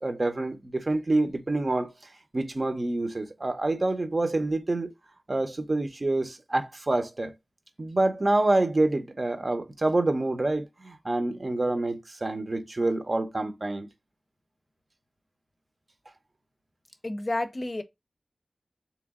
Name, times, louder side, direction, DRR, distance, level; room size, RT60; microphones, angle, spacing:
voice 1, 0.0-1.9 2.3-4.9 5.3-7.3 7.8-13.9, right 2 dB, 50° right, 0.7 m, -27 dB
voice 2, 17.0-17.8, left 2 dB, 45° left, 0.5 m, -30 dB
3.3 x 3.0 x 3.6 m
wide cardioid pair, 55°, 0 cm